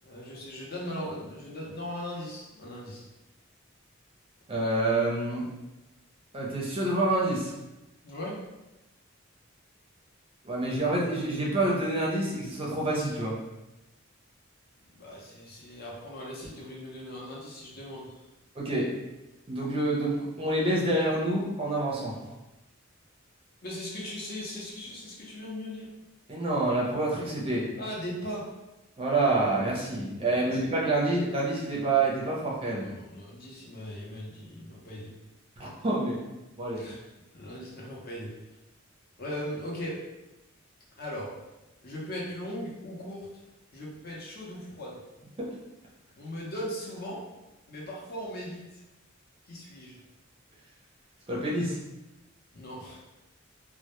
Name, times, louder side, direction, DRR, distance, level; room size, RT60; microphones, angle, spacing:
voice 1, 0.0-3.0 8.0-8.4 14.9-18.2 23.6-25.9 27.8-28.4 30.4-30.6 32.8-35.1 36.8-37.0 37.3-38.3 39.2-40.0 41.0-41.3 41.8-43.3 43.7-45.0 46.2-47.2 47.7-48.6 49.5-50.0 52.5-53.0, equal, 50° left, -4 dB, 0.6 m, -38 dB
voice 2, 4.5-5.5 6.3-7.5 10.4-13.4 18.6-18.9 19.5-22.2 26.3-27.7 29.0-32.9 35.6-36.2 36.6-36.8 45.4-45.5 51.3-51.8, right 2 dB, 25° right, -4 dB, 0.4 m, -27 dB
2.1 x 2.1 x 2.9 m, 1.0 s
head